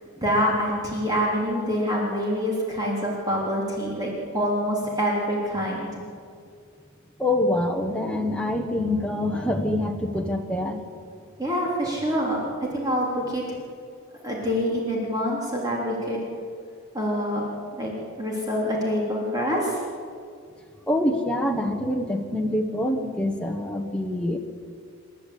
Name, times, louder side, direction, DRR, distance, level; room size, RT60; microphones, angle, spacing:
voice 1, 0.2-5.9 11.4-13.4 14.2-16.2 16.9-17.4 17.8-19.8, equal, 15° right, -3 dB, 3.5 m, -26 dB
voice 2, 7.2-10.8 20.9-24.4, left 1 dB, 5° left, 1 dB, 1.1 m, -25 dB
28.5 x 11.5 x 8.5 m, 2.3 s
head